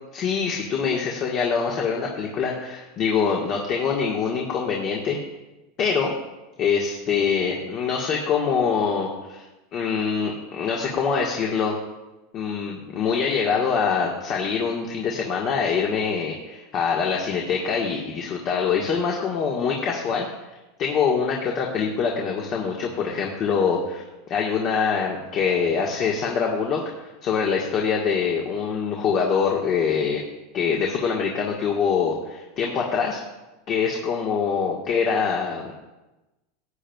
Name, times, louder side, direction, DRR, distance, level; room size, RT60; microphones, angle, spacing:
voice 1, 0.1-5.2 5.8-6.1 6.6-9.4 9.7-11.7 12.3-20.3 20.8-24.0 24.3-30.2 30.5-33.2 33.7-35.7, left 6 dB, 45° left, -1 dB, 1.5 m, -24 dB
16.0 x 8.9 x 2.3 m, 1.1 s
hypercardioid pair, 95°, 0 cm